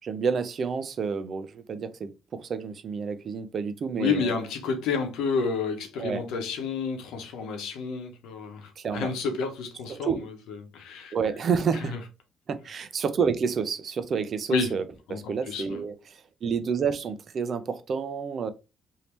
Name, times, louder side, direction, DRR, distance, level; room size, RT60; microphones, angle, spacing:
voice 1, 0.0-4.3 6.0-6.2 8.8-9.1 9.9-10.3 11.1-11.9 12.5-14.8 15.1-18.5, right 6 dB, 55° right, 0.5 m, -29 dB
voice 2, 4.0-11.1 11.8-12.0 14.5-14.7 15.1-15.8, left 5 dB, 90° left, 0.8 m, -30 dB
3.2 x 2.7 x 2.9 m
cardioid pair, 90°, 0 cm